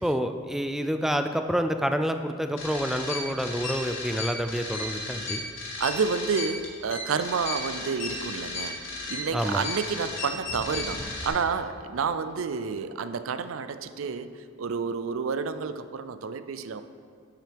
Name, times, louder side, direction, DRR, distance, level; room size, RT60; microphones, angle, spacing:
voice 1, 0.0-5.4 9.3-9.6, equal, ahead, 7 dB, 0.3 m, -28 dB
sound 1, 2.6-11.3, left 3 dB, 75° left, 2.5 m, -35 dB
voice 2, 5.8-14.3 14.6-16.8, right 5 dB, 85° right, 11 dB, 0.4 m, -30 dB
11.5 x 7.5 x 3.5 m, 2.2 s
head